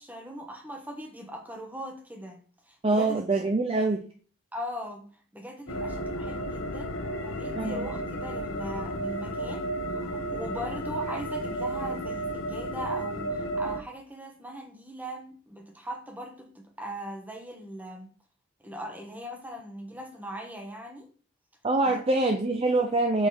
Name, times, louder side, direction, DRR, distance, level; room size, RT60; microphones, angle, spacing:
voice 1, 0.0-3.2 4.5-5.0 5.3-18.1 18.6-21.1 21.8-21.9, equal, 10° right, 1.1 m, -40 dB
voice 2, 2.8-4.0 7.5-7.9 21.6-23.3, right 2 dB, 25° right, 0.5 m, -25 dB
sound 1, 5.7-13.8, right 1 dB, 70° left, 0.8 m, -33 dB
6.5 x 4.9 x 3.9 m
head